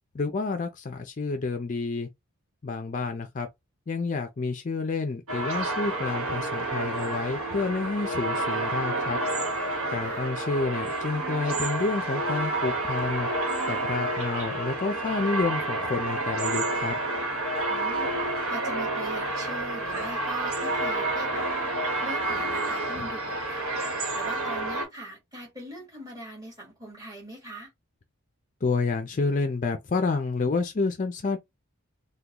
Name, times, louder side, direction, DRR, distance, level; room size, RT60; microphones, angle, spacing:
voice 1, 0.1-2.1 2.6-3.5 3.9-9.2 9.9-13.3 13.7-16.9 28.6-31.4, left 3 dB, 35° left, 0.4 m, -29 dB
sound 1, 5.3-24.8, right 2 dB, 75° right, 1.2 m, -29 dB
voice 2, 10.0-10.3 17.7-21.5 22.0-23.7 24.2-27.7, right 1 dB, 15° right, 1.6 m, -41 dB
3.7 x 2.3 x 2.9 m
head